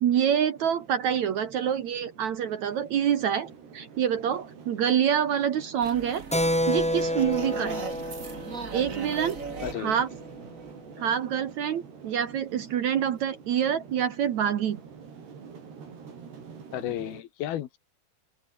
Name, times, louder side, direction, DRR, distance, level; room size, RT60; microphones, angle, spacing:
voice 1, 0.0-6.2 6.7-7.8 8.7-9.4 9.8-10.1 11.0-14.8, right 9 dB, 60° right, 2.1 m, -26 dB
sound 1, 0.6-17.2, right 6 dB, 80° right, 7.1 m, -47 dB
sound 2, 5.8-11.0, right 4 dB, 30° right, 1.7 m, -39 dB
Keyboard (musical), 6.3-10.4, equal, 5° left, 1.0 m, -30 dB
voice 2, 9.6-10.0 11.0-11.1 16.7-17.8, left 12 dB, 70° left, 3.2 m, -34 dB
open air
omnidirectional pair, 4.7 m